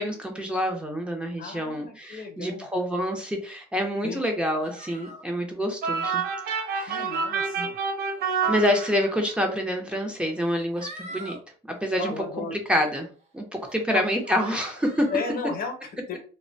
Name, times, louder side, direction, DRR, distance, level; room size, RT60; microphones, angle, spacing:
voice 1, 0.0-6.2 6.5-7.0 7.5-7.7 8.5-11.4 11.7-13.1 13.3-15.1, equal, 5° right, 2 dB, 0.6 m, -27 dB
voice 2, 1.4-2.7 4.0-4.2 6.9-7.7 12.0-12.6 13.9-14.0 15.1-16.2, left 4 dB, 60° left, 4 dB, 0.8 m, -34 dB
sound 1, 4.6-5.2 5.8-6.2 6.6-7.0 7.9-8.3 9.4-9.5 10.4-11.4 11.8-12.2 12.8-12.9 13.6-13.8 14.2-15.4, right 1 dB, 40° right, 0.9 m, -44 dB
sound 2, 5.8-9.3, right 5 dB, 65° right, 0.6 m, -28 dB
2.4 x 2.1 x 2.5 m, 0.37 s
cardioid pair, 110°, 17 cm